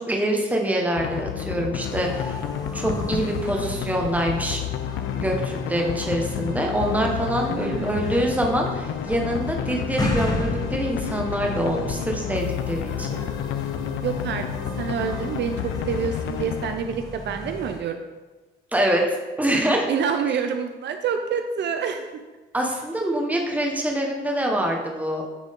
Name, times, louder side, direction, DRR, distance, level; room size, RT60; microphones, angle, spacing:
voice 1, 0.0-2.4 2.7-4.6 5.1-13.2 18.7-19.9 22.5-25.2, right 1 dB, 10° right, 0 dB, 1.2 m, -25 dB
sound 1, 1.0-16.8, left 9 dB, 80° left, 0.5 m, -30 dB
sound 2, 1.9-17.8, left 1 dB, 20° left, 1.1 m, -35 dB
voice 2, 7.4-8.2 14.0-14.5 14.8-18.0 19.9-22.1, right 6 dB, 60° right, 6 dB, 0.5 m, -27 dB
9.2 x 3.7 x 3.7 m, 1.2 s
cardioid pair, 90°, 20 cm